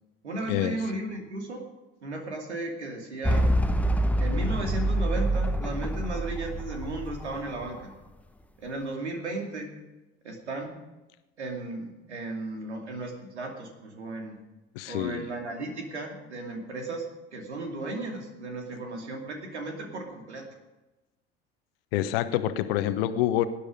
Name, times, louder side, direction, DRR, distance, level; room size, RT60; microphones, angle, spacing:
voice 1, 0.2-1.6 2.0-3.5 4.2-7.9 8.6-9.7 10.2-10.8 11.4-14.4 14.9-17.0 17.3-20.5, right 2 dB, 75° right, 3 dB, 2.6 m, -35 dB
sound 1, 3.2-7.8, right 1 dB, 5° left, 1.0 m, -26 dB
voice 2, 14.7-15.3 21.9-23.5, left 13 dB, 55° left, 12 dB, 1.0 m, -27 dB
18.5 x 10.0 x 5.2 m, 1.1 s
figure-of-eight pair, 65°, 34 cm